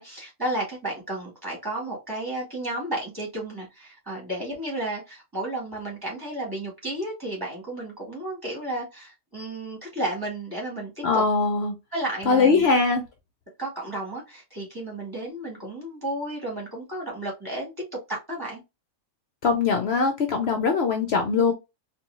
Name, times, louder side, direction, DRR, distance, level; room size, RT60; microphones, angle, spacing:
voice 1, 0.0-11.2 11.9-12.7 13.6-18.6, right 1 dB, 15° right, 2.2 m, -32 dB
voice 2, 11.0-11.7 12.3-13.0 19.4-21.5, left 4 dB, 60° left, 0.9 m, -21 dB
4.5 x 2.6 x 2.6 m
omnidirectional pair, 1.3 m